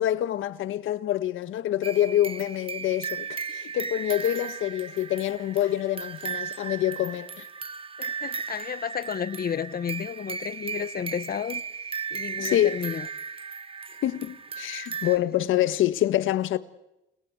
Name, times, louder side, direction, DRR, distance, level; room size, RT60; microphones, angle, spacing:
voice 1, 0.0-7.5 12.4-12.8 14.0-16.6, left 12 dB, 80° left, 1.6 m, -26 dB
sound 1, 1.8-15.2, right 6 dB, 30° right, 1.2 m, -36 dB
voice 2, 8.0-11.6 12.1-13.1, left 8 dB, 50° left, 1.2 m, -32 dB
29.5 x 20.5 x 8.1 m
cardioid pair, 90°, 20 cm